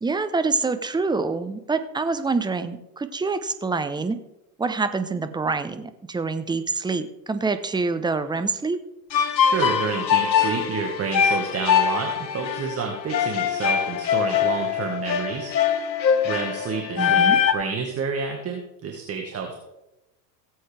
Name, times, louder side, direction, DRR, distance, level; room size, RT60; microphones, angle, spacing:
voice 1, 0.0-4.2 4.6-8.8 16.9-17.4, right 4 dB, 10° right, 10 dB, 0.7 m, -26 dB
sound 1, 9.1-17.5, left 8 dB, 85° left, 1.0 m, -22 dB
voice 2, 9.4-15.5 16.2-19.6, right 5 dB, 30° right, 2 dB, 1.6 m, -29 dB
17.0 x 7.9 x 3.4 m, 0.92 s
hypercardioid pair, 80°, 50 cm